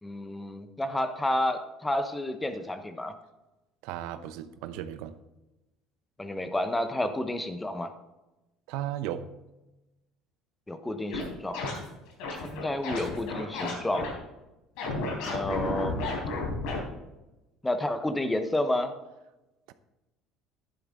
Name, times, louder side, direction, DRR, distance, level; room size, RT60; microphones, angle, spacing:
voice 1, 0.0-3.1 6.2-7.9 10.7-11.6 12.3-14.2 15.3-16.0 17.6-18.9, left 1 dB, 10° left, 9 dB, 0.9 m, -30 dB
voice 2, 3.8-5.2 8.7-9.2, right 11 dB, 80° right, 12 dB, 0.7 m, -35 dB
sound 1, 11.1-11.2 11.5-11.8 12.2-14.1 14.8-16.8, left 2 dB, 80° left, 3.8 m, -32 dB
11.0 x 10.5 x 3.7 m, 1.0 s
cardioid pair, 125°, 0 cm